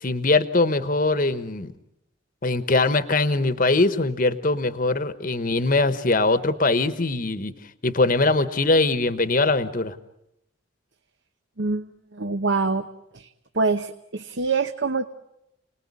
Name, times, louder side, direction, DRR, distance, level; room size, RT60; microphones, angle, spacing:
voice 1, 0.0-1.7 2.4-7.5 7.8-10.0, left 3 dB, 40° left, 12 dB, 1.2 m, -22 dB
voice 2, 11.6-12.9 13.1-13.3 13.5-15.0, right 4 dB, 65° right, 7 dB, 1.0 m, -25 dB
29.5 x 20.0 x 9.8 m, 0.84 s
head